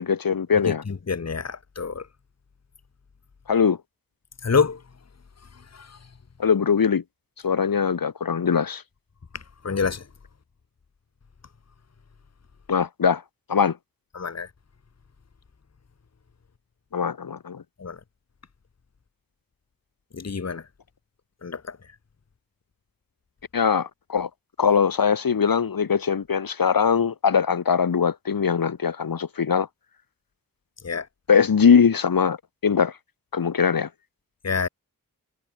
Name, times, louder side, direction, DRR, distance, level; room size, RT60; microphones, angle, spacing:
voice 1, 0.0-0.8 3.5-3.8 6.4-7.0 7.4-8.8 12.7-13.2 13.5-13.8 16.9-17.6 23.5-24.3 24.6-29.7 31.3-32.4 32.6-32.9 33.3-33.9, left 6 dB, 85° left, 1.8 m, -21 dB
voice 2, 0.6-2.1 4.4-4.8 5.7-6.0 9.6-10.0 14.1-14.5 17.8-18.0 20.1-20.6 21.4-21.8 30.8-31.1 34.4-34.7, left 5 dB, 50° left, 1.4 m, -27 dB
wide cardioid pair, 65°, 34 cm